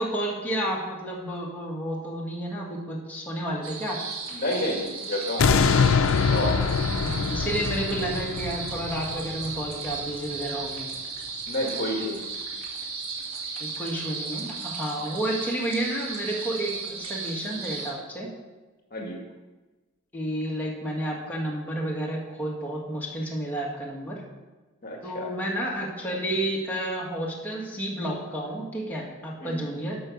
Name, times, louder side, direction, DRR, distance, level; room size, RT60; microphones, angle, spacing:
voice 1, 0.0-4.0 7.0-10.9 13.6-18.3 20.1-24.2 25.0-30.0, right 1 dB, 10° left, -4 dB, 1.9 m, -31 dB
sound 1, 3.6-17.9, right 4 dB, 90° right, 2.4 m, -35 dB
voice 2, 4.3-5.5 6.3-6.6 11.5-12.2 18.9-19.2 24.8-25.3 29.4-29.7, left 1 dB, 45° left, 0 dB, 1.7 m, -30 dB
sound 2, 5.4-10.5 11.0-11.1, left 5 dB, 70° left, 0.5 m, -24 dB
12.5 x 5.5 x 6.5 m, 1.2 s
head